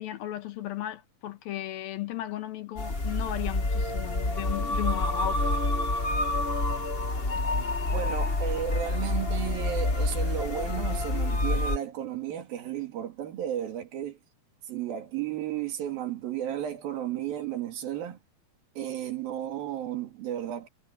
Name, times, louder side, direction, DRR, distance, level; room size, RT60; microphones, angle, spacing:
voice 1, 0.0-5.5, left 13 dB, 85° left, 3.3 m, -35 dB
sound 1, 2.8-11.8, left 2 dB, 55° left, 0.6 m, -28 dB
voice 2, 7.9-14.2 14.7-18.2 18.8-20.7, right 10 dB, 90° right, 4.1 m, -33 dB
omnidirectional pair, 4.0 m